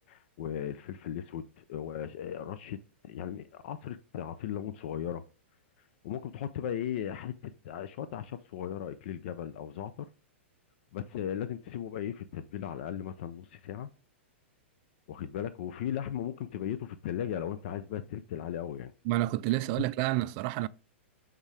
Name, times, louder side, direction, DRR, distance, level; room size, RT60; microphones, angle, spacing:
voice 1, 0.0-2.8 3.0-5.2 6.0-10.1 10.9-13.9 15.1-18.9, left 10 dB, 60° left, 0.5 m, -37 dB
voice 2, 19.1-20.7, right 17 dB, 45° right, 0.4 m, -29 dB
8.0 x 3.7 x 3.3 m
hypercardioid pair, 115°, 7 cm